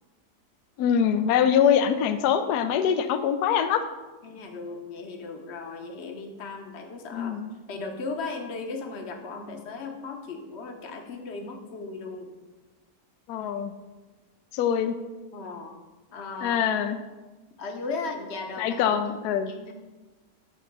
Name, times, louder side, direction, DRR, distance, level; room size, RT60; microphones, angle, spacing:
voice 1, 0.8-3.8 7.1-7.5 13.3-13.7 14.5-15.0 16.4-17.0 18.6-19.5, left 8 dB, 75° left, 10 dB, 1.1 m, -23 dB
voice 2, 4.2-7.4 7.7-12.3 15.3-15.8 16.1-16.6 17.6-18.8 19.1-19.7, left 3 dB, 45° left, 4 dB, 1.0 m, -36 dB
9.2 x 3.8 x 5.9 m, 1.2 s
omnidirectional pair, 1.8 m